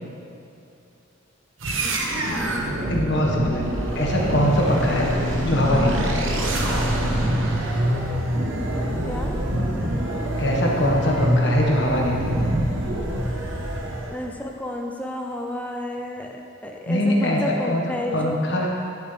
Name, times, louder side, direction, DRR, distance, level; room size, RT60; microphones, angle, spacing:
sound 1, 1.6-14.2, right 1 dB, 80° right, 1.1 m, -25 dB
voice 1, 2.4-2.7 9.1-9.4 14.1-18.4, left 1 dB, 5° left, 1 dB, 0.6 m, -31 dB
voice 2, 2.9-3.6 3.9-5.1 5.4-6.2 10.4-12.4 16.9-17.8 18.1-18.7, left 1 dB, 60° left, -2 dB, 1.4 m, -22 dB
14.0 x 6.8 x 3.4 m, 2.6 s
head